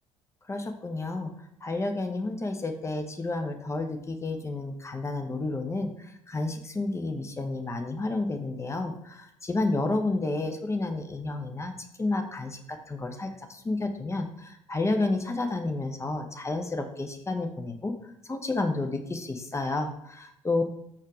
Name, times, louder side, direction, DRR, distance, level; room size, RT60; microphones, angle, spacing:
voice 1, 0.5-1.3 1.6-11.7 12.0-17.9 18.2-20.6, left 2 dB, 15° left, 5 dB, 0.6 m, -30 dB
4.5 x 2.4 x 4.6 m, 0.75 s
figure-of-eight pair, 50°, 17 cm